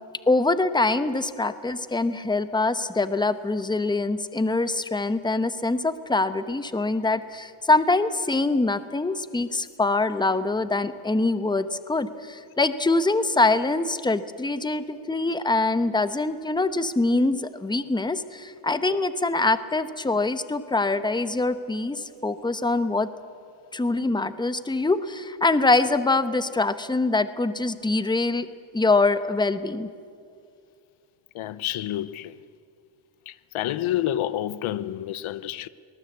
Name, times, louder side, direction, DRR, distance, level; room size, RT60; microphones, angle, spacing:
voice 1, 0.3-23.1 23.7-28.5 28.7-29.9, left 3 dB, 10° left, 0.9 m, -24 dB
voice 2, 31.3-32.3 33.3-35.7, left 12 dB, 90° left, 0.8 m, -29 dB
23.5 x 19.5 x 8.2 m
cardioid pair, 115°, 47 cm